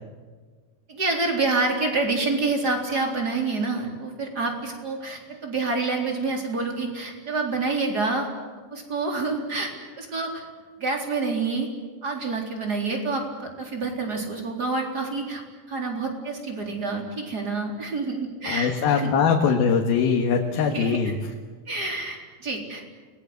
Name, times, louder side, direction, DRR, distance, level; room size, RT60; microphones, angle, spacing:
voice 1, 0.9-8.3 8.7-9.7 10.0-10.5 10.8-11.7 12.0-15.4 15.7-19.1 20.7-21.0 21.7-22.8, right 3 dB, 25° right, 2 dB, 4.1 m, -27 dB
voice 2, 18.5-21.2, left 6 dB, 75° left, 2 dB, 3.4 m, -22 dB
29.0 x 20.5 x 8.1 m, 1.5 s
omnidirectional pair, 4.4 m